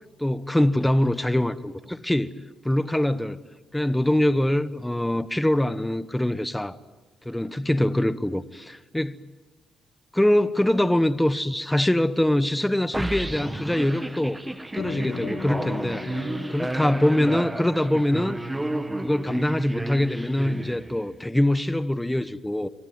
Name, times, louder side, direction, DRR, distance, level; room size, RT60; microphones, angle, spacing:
voice 1, 0.2-1.5 1.9-2.3 2.6-3.4 3.7-6.8 7.2-9.2 10.1-14.4 14.7-18.4 19.0-22.7, left 1 dB, 5° left, 1.1 m, -23 dB
sound 1, 12.9-21.2, right 1 dB, 10° right, 1.4 m, -32 dB
sound 2, 14.8-19.4, left 4 dB, 85° left, 5.9 m, -38 dB
27.0 x 22.5 x 9.6 m
cardioid pair, 90°, 0 cm